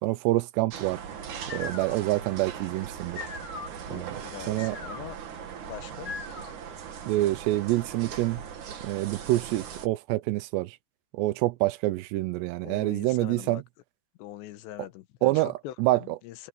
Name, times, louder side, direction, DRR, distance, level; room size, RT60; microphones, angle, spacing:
voice 1, 0.0-1.0 1.5-3.2 3.9-4.2 4.5-4.8 7.1-8.4 8.8-10.8 11.1-13.6 15.2-16.2, right 18 dB, 80° right, 2.8 m, -27 dB
sound 1, 0.7-9.9, right 7 dB, 50° right, 2.9 m, -40 dB
sound 2, 1.2-6.8, left 5 dB, 35° left, 4.2 m, -42 dB
voice 2, 3.9-5.2 5.7-6.2 12.6-13.6 14.2-16.5, left 13 dB, 80° left, 3.2 m, -43 dB
omnidirectional pair, 5.0 m